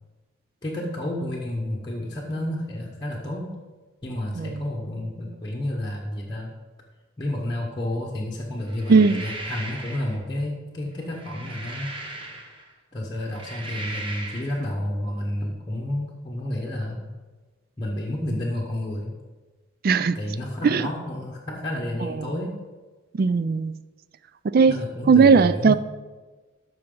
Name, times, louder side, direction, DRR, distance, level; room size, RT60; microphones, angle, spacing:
voice 1, 0.6-3.6 4.0-6.5 7.2-12.0 12.9-17.1 17.8-19.2 20.1-22.6 24.7-25.8, left 1 dB, 20° left, -5 dB, 1.0 m, -30 dB
sound 1, 8.7-10.2 11.0-12.7 13.2-14.6, right 2 dB, 25° right, 1.0 m, -37 dB
voice 2, 8.9-9.2 19.8-20.2 20.6-20.9 22.0-22.4 23.1-23.8 24.5-24.7 25.1-25.8, right 5 dB, 45° right, 15 dB, 0.3 m, -18 dB
13.0 x 5.8 x 3.8 m, 1.3 s
head